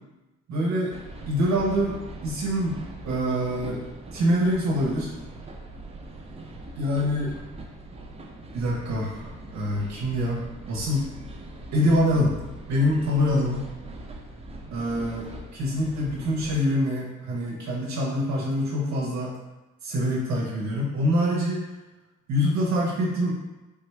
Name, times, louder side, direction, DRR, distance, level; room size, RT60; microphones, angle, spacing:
voice 1, 0.5-0.9 1.3-2.0 2.2-2.8 3.0-3.8 4.1-5.1 6.8-7.3 8.5-9.3 9.5-11.0 11.7-12.4 12.7-13.6 14.7-19.3 19.8-21.6 22.3-23.4, equal, 65° right, -3 dB, 0.7 m, -25 dB
sound 1, 0.9-16.6, right 1 dB, 20° right, 0.4 m, -41 dB
3.4 x 2.2 x 3.1 m, 1.1 s
cardioid pair, 90°, 30 cm